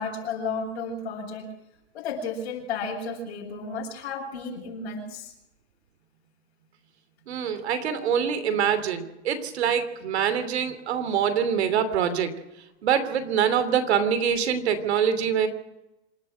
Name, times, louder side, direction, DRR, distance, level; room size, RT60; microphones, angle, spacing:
voice 1, 0.0-1.5 1.9-5.3, left 4 dB, 60° left, -6 dB, 6.9 m, -33 dB
voice 2, 7.3-12.3 12.8-15.5, right 8 dB, 65° right, 10 dB, 3.0 m, -24 dB
27.0 x 12.5 x 7.7 m, 0.92 s
supercardioid pair, 175°, 35 cm